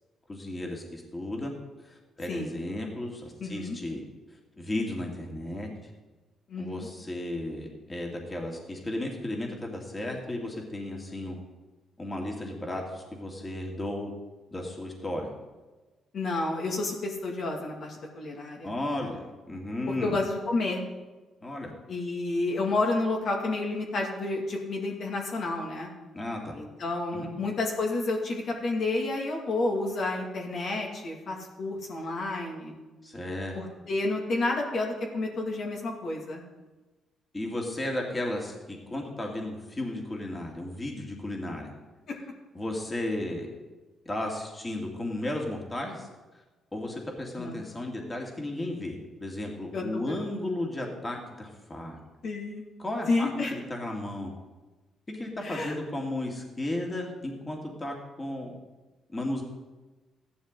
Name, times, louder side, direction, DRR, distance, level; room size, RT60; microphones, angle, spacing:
voice 1, 0.3-1.5 1.8-4.0 4.6-5.7 6.6-11.4 12.0-14.1 14.5-15.3 18.6-19.2 19.5-20.2 21.4-21.7 26.1-26.6 27.1-27.3 33.0-33.6 37.3-41.7 42.5-43.5 44.1-46.1 46.7-52.0 52.8-54.3 55.1-58.5 59.1-59.4, left 1 dB, 25° left, 0 dB, 2.5 m, -34 dB
voice 2, 3.4-3.8 6.5-6.9 16.1-18.7 20.0-20.8 21.9-25.9 26.5-32.7 33.6-36.4 42.1-42.2 47.4-47.6 49.7-49.8 52.2-52.6 53.1-53.5 55.4-55.7, left 2 dB, 60° left, 0 dB, 2.4 m, -30 dB
14.5 x 11.5 x 4.0 m, 1.2 s
cardioid pair, 90°, 0 cm